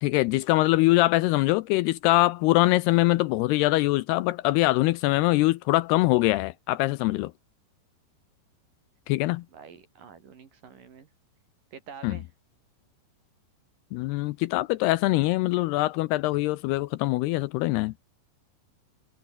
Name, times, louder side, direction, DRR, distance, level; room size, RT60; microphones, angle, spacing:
voice 1, 0.0-7.3 9.1-9.4 12.0-12.2 13.9-18.1, left 19 dB, 80° left, 2.5 m, -23 dB
voice 2, 9.5-11.1 11.7-12.3, right 6 dB, 50° right, 4.5 m, -47 dB
omnidirectional pair, 5.0 m